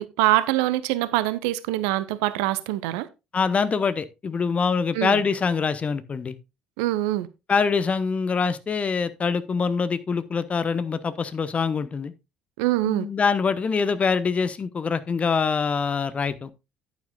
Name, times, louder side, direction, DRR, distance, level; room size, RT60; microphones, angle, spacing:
voice 1, 0.0-3.1 4.9-5.2 6.8-7.3 12.6-13.1, right 16 dB, 65° right, 0.7 m, -24 dB
voice 2, 3.3-6.4 7.5-12.1 12.8-16.5, left 5 dB, 30° left, 1.0 m, -24 dB
10.5 x 9.9 x 2.4 m
figure-of-eight pair, 55°, 4 cm